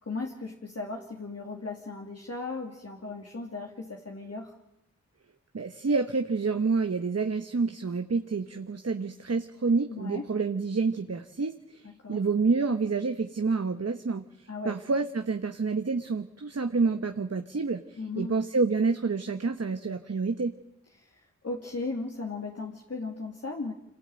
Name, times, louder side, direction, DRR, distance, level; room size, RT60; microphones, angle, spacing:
voice 1, 0.0-4.5 9.9-10.3 12.0-12.2 14.5-14.8 18.0-18.4 20.9-23.7, left 3 dB, 55° left, 0 dB, 2.7 m, -37 dB
voice 2, 5.5-11.8 12.1-14.2 14.6-20.5, right 4 dB, 55° right, 7 dB, 1.3 m, -28 dB
26.5 x 17.5 x 9.0 m, 0.83 s
wide cardioid pair, 55°, 30 cm